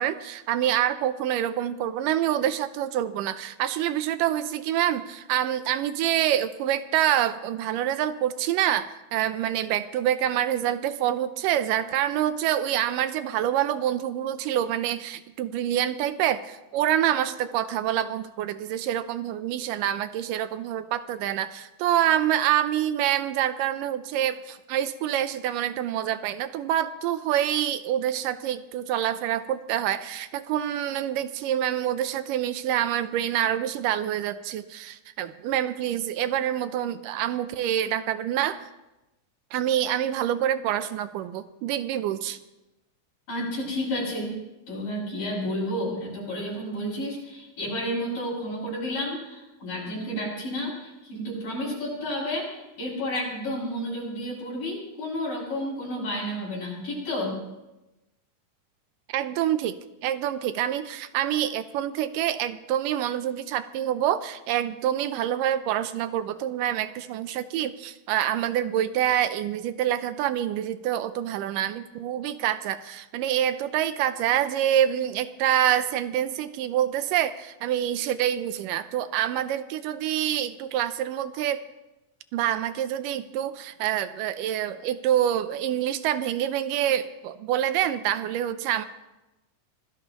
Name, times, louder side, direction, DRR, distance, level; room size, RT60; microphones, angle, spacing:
voice 1, 0.0-38.7 39.5-42.4 59.1-59.8 60.0-81.6 82.3-88.9, right 11 dB, 80° right, 12 dB, 2.1 m, -26 dB
voice 2, 43.3-44.3 44.7-57.4, equal, 65° left, -7 dB, 7.6 m, -31 dB
25.0 x 17.0 x 3.0 m, 1.0 s
omnidirectional pair, 4.1 m